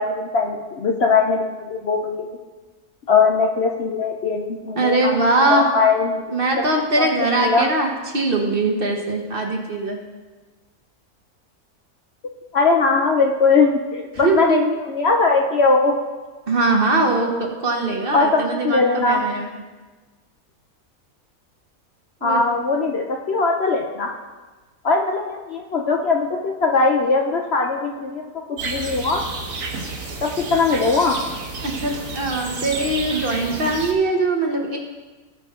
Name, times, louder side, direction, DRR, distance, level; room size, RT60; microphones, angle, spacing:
voice 1, 0.0-2.3 3.1-5.2 5.5-6.6 7.0-7.1 7.4-7.7 12.5-15.9 18.1-19.3 22.2-24.1 24.8-28.3 28.6-29.2 30.2-31.1, left 4 dB, 55° left, 2 dB, 0.9 m, -20 dB
voice 2, 4.8-5.7 6.3-10.0 14.2-14.6 16.5-17.3 17.6-19.5 22.2-22.4 31.6-34.8, right 2 dB, 40° right, 1 dB, 1.2 m, -21 dB
sound 1, 28.6-33.9, right 3 dB, 65° right, 1.5 m, -31 dB
17.0 x 5.8 x 3.7 m, 1.3 s
omnidirectional pair, 1.5 m